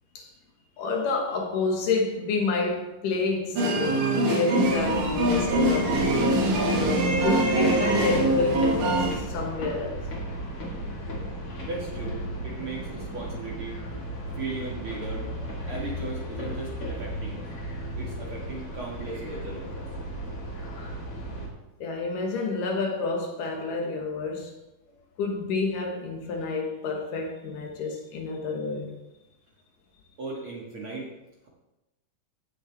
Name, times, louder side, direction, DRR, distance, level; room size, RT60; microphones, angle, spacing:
voice 1, 0.8-4.0 4.3-6.0 6.7-10.0 21.8-24.5 25.2-28.9, left 3 dB, 70° left, 2.7 m, -29 dB
sound 1, 3.6-9.1, right 1 dB, 70° right, 2.9 m, -23 dB
sound 2, 4.6-21.5, equal, 45° left, 3.1 m, -35 dB
voice 2, 11.6-13.8 14.4-15.3 15.7-17.5 18.0-19.9 30.2-31.1, right 3 dB, 50° right, 1.8 m, -37 dB
16.0 x 6.4 x 3.4 m
omnidirectional pair, 4.1 m